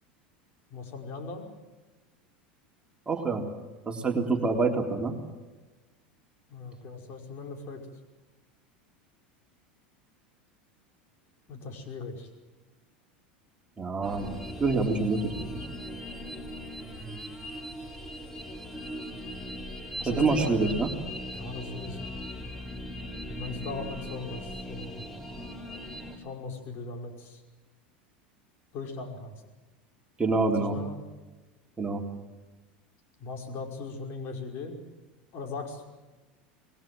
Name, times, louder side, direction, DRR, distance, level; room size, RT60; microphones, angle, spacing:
voice 1, 0.7-1.5 6.5-7.8 11.5-12.3 20.0-20.8 21.3-22.1 23.3-25.1 26.1-27.4 28.7-29.3 30.5-31.0 33.2-34.8 35.3-35.8, left 3 dB, 50° left, 3 dB, 5.4 m, -38 dB
voice 2, 3.1-3.4 3.9-5.2 13.8-14.3 14.6-15.5 20.1-20.9 30.2-30.8 31.8-32.0, right 3 dB, 20° right, 2 dB, 3.6 m, -26 dB
sound 1, 14.0-26.2, left 1 dB, 5° left, 4.7 m, -39 dB
27.0 x 20.5 x 7.7 m, 1.2 s
hypercardioid pair, 90°, 5 cm